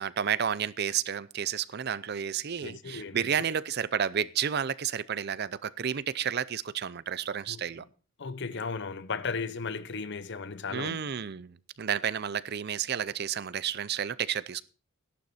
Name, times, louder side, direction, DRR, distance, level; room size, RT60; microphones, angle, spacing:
voice 1, 0.0-7.8 10.7-14.6, right 8 dB, 50° right, 0.5 m, -31 dB
voice 2, 2.6-3.3 7.5-7.6 8.2-11.0, left 4 dB, 60° left, 0.8 m, -35 dB
12.5 x 11.5 x 4.2 m
head